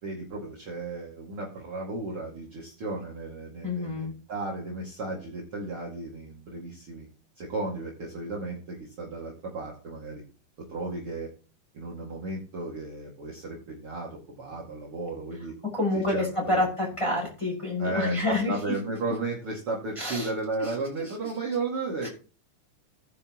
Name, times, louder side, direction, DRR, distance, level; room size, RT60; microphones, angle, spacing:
voice 1, 0.0-7.1 7.4-10.2 10.7-11.3 11.7-15.5 15.9-16.6 17.8-22.1, right 3 dB, 40° right, -2 dB, 2.9 m, -34 dB
voice 2, 3.6-4.1 15.7-18.5 20.0-20.3 20.6-20.7 22.0-22.1, left 2 dB, 10° left, -2 dB, 6.0 m, -28 dB
16.5 x 10.5 x 3.1 m, 0.35 s
omnidirectional pair, 4.1 m